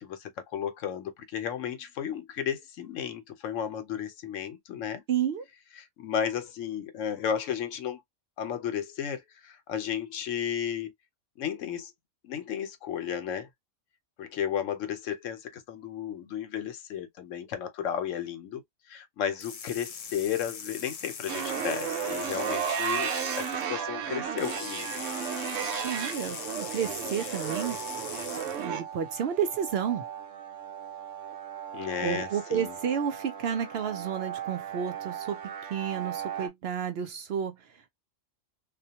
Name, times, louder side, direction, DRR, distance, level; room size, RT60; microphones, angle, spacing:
voice 1, 0.0-5.0 5.8-8.0 8.4-10.9 11.4-11.9 12.2-13.5 14.2-18.6 18.9-24.9 27.0-27.2 31.7-32.7, left 8 dB, 85° left, 1.0 m, -33 dB
voice 2, 5.1-5.4 25.8-27.8 28.6-30.0 32.0-37.6, right 8 dB, 65° right, 0.7 m, -31 dB
sound 1, 19.4-23.7 24.4-28.7, left 6 dB, 65° left, 0.3 m, -41 dB
sound 2, 21.3-36.5, right 8 dB, 85° right, 1.0 m, -35 dB
2.3 x 2.2 x 2.8 m
omnidirectional pair, 1.3 m